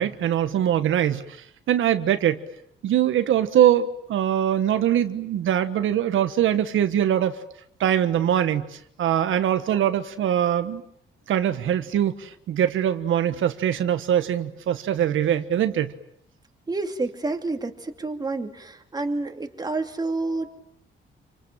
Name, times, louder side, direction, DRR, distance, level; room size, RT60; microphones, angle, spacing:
voice 1, 0.0-2.4 2.8-7.3 7.8-10.8 11.3-15.9, right 10 dB, 85° right, 9 dB, 1.4 m, -22 dB
voice 2, 16.7-20.5, right 3 dB, 20° right, 5 dB, 2.6 m, -29 dB
28.0 x 26.0 x 7.5 m, 0.72 s
cardioid pair, 140°, 20 cm